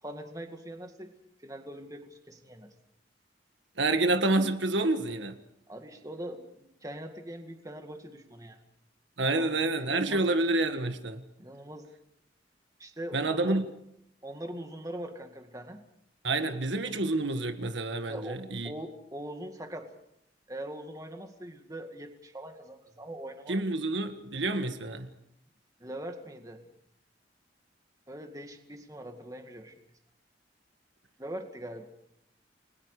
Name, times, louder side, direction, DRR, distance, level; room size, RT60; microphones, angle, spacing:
voice 1, 0.0-1.1 1.4-2.7 5.7-8.6 9.2-10.3 11.4-11.9 12.8-13.6 14.2-15.8 16.5-16.6 18.1-19.9 20.5-23.6 25.8-26.7 28.1-29.7 31.2-31.9, right 1 dB, 20° right, 2.1 m, -42 dB
voice 2, 3.8-5.4 9.2-11.2 13.1-13.7 16.2-18.7 23.5-25.1, right 2 dB, 80° right, 1.6 m, -28 dB
30.0 x 21.5 x 5.0 m
head